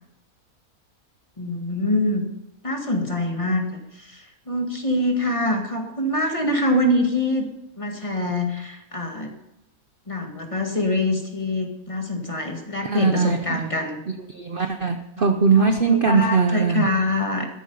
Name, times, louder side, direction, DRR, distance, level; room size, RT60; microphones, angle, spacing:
voice 1, 1.4-2.3 2.6-7.5 7.8-9.3 10.1-14.0 15.6-17.5, left 1 dB, 20° left, 3 dB, 1.9 m, -25 dB
voice 2, 12.8-13.7 14.3-16.8, right 5 dB, 45° right, 6 dB, 0.8 m, -20 dB
13.0 x 11.5 x 5.4 m, 0.89 s
omnidirectional pair, 1.6 m